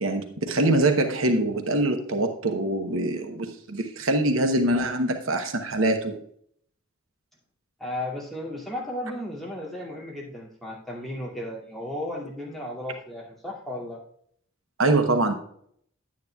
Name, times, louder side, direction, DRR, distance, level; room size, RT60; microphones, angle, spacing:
voice 1, 0.0-6.2 14.8-15.3, right 2 dB, 70° right, 6 dB, 0.9 m, -24 dB
voice 2, 7.8-14.0, left 1 dB, ahead, -5 dB, 2.4 m, -34 dB
10.5 x 9.5 x 2.3 m, 0.65 s
head